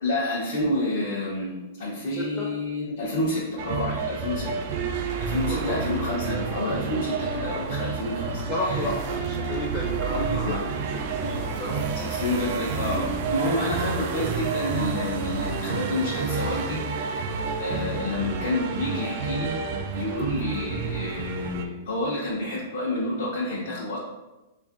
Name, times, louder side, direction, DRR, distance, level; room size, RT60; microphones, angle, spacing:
voice 1, 0.0-4.5 5.2-8.9 10.3-10.6 11.9-16.8 17.3-24.0, left 1 dB, 65° left, -6 dB, 0.8 m, -29 dB
voice 2, 2.2-2.5 5.5-5.8 8.5-10.5 11.1-11.9 12.3-12.4 20.1-20.3, left 1 dB, 15° left, -5 dB, 0.6 m, -32 dB
sound 1, 3.6-21.6, right 5 dB, 40° right, 0.3 m, -29 dB
3.5 x 2.5 x 3.5 m, 1.0 s
supercardioid pair, 175°, 0 cm